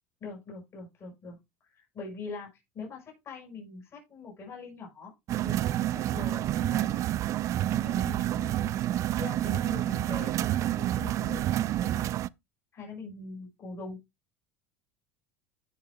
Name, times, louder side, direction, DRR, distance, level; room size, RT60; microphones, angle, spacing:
voice 1, 0.2-1.4 1.6-2.5 2.7-5.1 5.4-7.0 7.7-8.8 9.2-12.2 12.7-14.0, left 3 dB, 40° left, -1 dB, 5.1 m, -43 dB
sound 1, 5.3-12.3, right 13 dB, 45° right, 0.4 m, -28 dB
14.5 x 5.6 x 2.3 m, 0.22 s
supercardioid pair, 100°, 7 cm